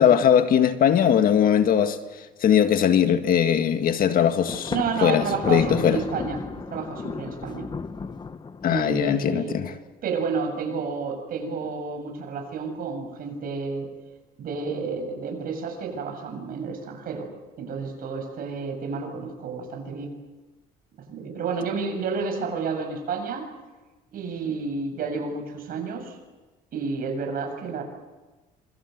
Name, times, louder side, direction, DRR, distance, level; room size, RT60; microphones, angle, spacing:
voice 1, 0.0-2.0 2.4-4.7 5.0-6.0 8.6-9.7, left 9 dB, 55° left, 1.9 m, -20 dB
Thunder, 4.5-9.1, left 4 dB, 25° left, 1.1 m, -34 dB
voice 2, 4.7-6.4 6.7-7.7 8.7-9.6 10.0-13.9 14.4-17.3 17.6-20.1 21.1-23.5 24.1-26.2 26.7-27.8, right 5 dB, 60° right, 7.8 m, -30 dB
26.5 x 24.0 x 8.1 m
cardioid pair, 110°, 17 cm